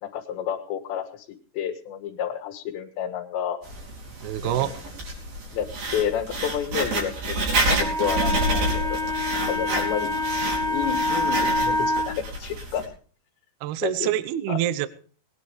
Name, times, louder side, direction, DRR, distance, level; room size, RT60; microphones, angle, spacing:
voice 1, 0.0-1.3 1.5-3.6 4.4-4.7 5.5-7.1 7.5-9.0 9.3-10.1 10.7-12.8 13.8-14.1 14.5-14.6, left 9 dB, 80° left, 3 dB, 3.8 m, -30 dB
Writing, 3.6-12.9, right 2 dB, 55° right, 6.1 m, -29 dB
voice 2, 4.2-4.7 13.6-14.9, right 13 dB, 75° right, 14 dB, 2.7 m, -26 dB
Wind instrument woodwind instrument, 7.8-12.1, left 1 dB, 10° right, 1.7 m, -26 dB
19.5 x 10.0 x 5.0 m, 0.43 s
omnidirectional pair, 5.0 m